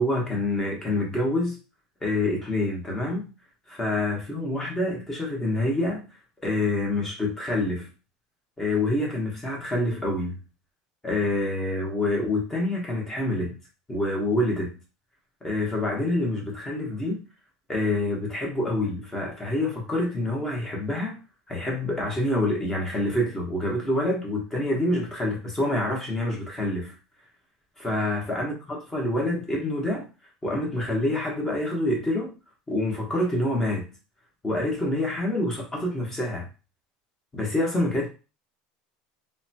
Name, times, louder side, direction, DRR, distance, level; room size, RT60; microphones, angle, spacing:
voice 1, 0.0-1.6 2.0-3.3 3.7-6.0 6.4-7.9 8.6-10.4 11.0-13.5 13.9-14.8 15.4-17.2 17.7-21.2 21.5-26.9 27.8-30.1 30.4-32.3 32.7-33.9 34.4-36.5 37.3-38.1, left 1 dB, 15° left, -2 dB, 1.0 m, -27 dB
2.8 x 2.2 x 2.7 m, 0.32 s
supercardioid pair, 135°, 3 cm